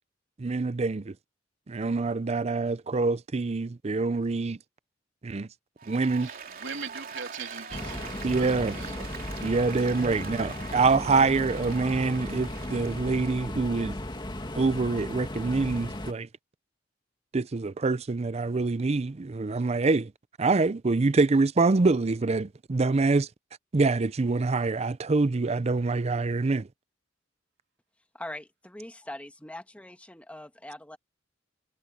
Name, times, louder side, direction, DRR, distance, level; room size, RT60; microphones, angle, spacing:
voice 1, 0.4-1.1 1.7-4.6 5.2-5.5 5.9-6.3 8.2-8.8 9.4-14.0 14.5-16.3 17.3-20.1 20.4-23.3 23.7-26.7, right 3 dB, 35° right, 0.5 m, -25 dB
Applause, 5.8-13.3, right 6 dB, 50° right, 3.1 m, -43 dB
voice 2, 6.2-9.1, right 5 dB, 75° right, 3.3 m, -41 dB
sound 1, 7.7-16.1, left 1 dB, 25° left, 2.3 m, -36 dB
voice 3, 28.1-31.0, left 1 dB, 5° left, 1.4 m, -42 dB
head